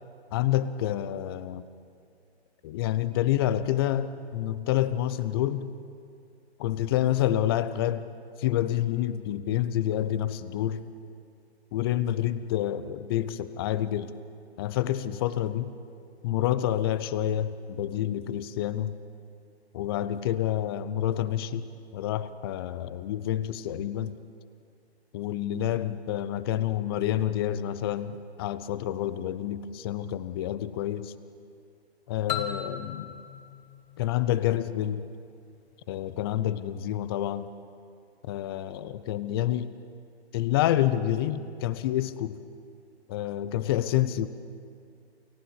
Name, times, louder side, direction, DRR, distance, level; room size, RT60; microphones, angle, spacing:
voice 1, 0.3-1.6 2.6-5.7 6.6-8.1 8.4-10.9 11.7-14.1 14.6-15.7 16.2-19.0 19.7-24.2 25.1-31.1 32.1-33.1 34.0-35.0 35.9-37.5 38.2-39.7 40.3-42.4 43.1-44.3, left 12 dB, 20° left, 15 dB, 0.6 m, -28 dB
sound 1, 32.3-35.0, left 8 dB, 40° left, 1.7 m, -37 dB
29.0 x 15.5 x 7.3 m, 2.3 s
figure-of-eight pair, 135°, 33 cm